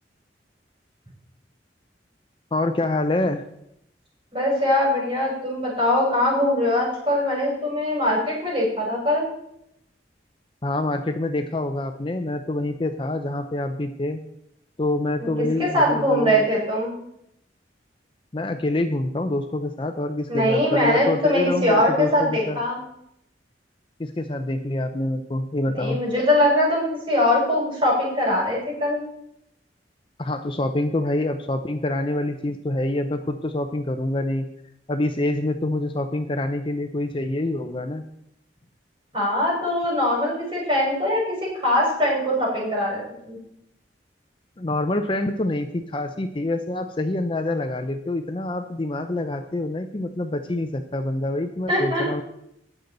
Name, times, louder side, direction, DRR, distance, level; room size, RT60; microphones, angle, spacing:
voice 1, 2.5-3.4 10.6-14.2 14.8-16.5 18.3-22.6 24.0-26.0 30.2-34.5 34.9-38.0 44.6-52.2, left 2 dB, 30° left, 7 dB, 0.6 m, -26 dB
voice 2, 4.3-9.2 15.2-15.3 15.6-16.9 20.3-22.8 25.7-29.0 39.1-43.4 51.7-52.1, left 1 dB, 30° right, -4 dB, 5.3 m, -22 dB
18.0 x 6.8 x 3.9 m, 0.78 s
head